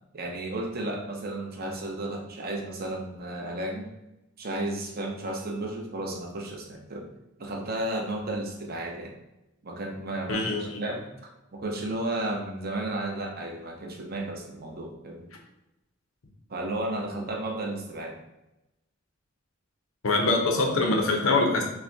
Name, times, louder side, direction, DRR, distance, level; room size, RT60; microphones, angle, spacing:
voice 1, 0.1-3.9 4.4-7.1 7.4-9.1 9.6-11.1 11.5-15.3 16.5-18.2, right 1 dB, 50° right, 0 dB, 0.8 m, -33 dB
voice 2, 10.3-10.8 20.0-21.6, left 2 dB, 85° left, 1 dB, 0.8 m, -24 dB
5.9 x 2.2 x 2.7 m, 0.94 s
head